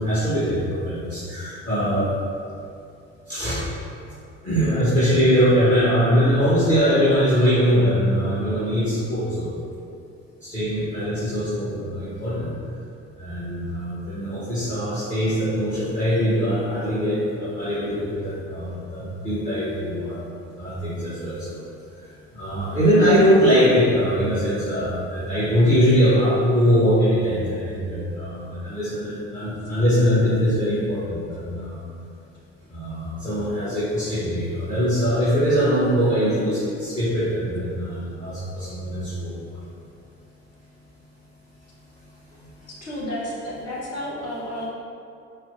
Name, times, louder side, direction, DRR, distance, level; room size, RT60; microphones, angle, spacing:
voice 1, 0.0-2.1 3.3-3.7 4.4-9.5 10.4-12.5 13.2-20.2 20.6-21.6 22.0-22.1 22.3-31.8 32.7-39.6 42.4-42.5, equal, 20° left, -13 dB, 1.3 m, -22 dB
voice 2, 42.7-44.6, left 1 dB, 40° left, -6 dB, 1.2 m, -31 dB
4.4 x 2.2 x 3.7 m, 2.5 s
figure-of-eight pair, 55°, 37 cm